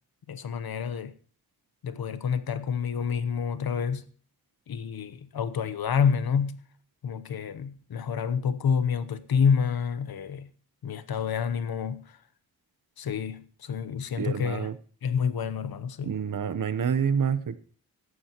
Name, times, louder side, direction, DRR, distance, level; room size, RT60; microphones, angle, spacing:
voice 1, 0.3-1.1 1.8-4.1 4.7-6.6 7.0-10.5 10.8-12.2 13.0-14.7 15.0-16.2, left 6 dB, 70° left, 1.0 m, -28 dB
voice 2, 14.2-14.8 16.0-17.6, right 7 dB, 60° right, 1.0 m, -27 dB
15.5 x 11.5 x 3.0 m
wide cardioid pair, 145°, 37 cm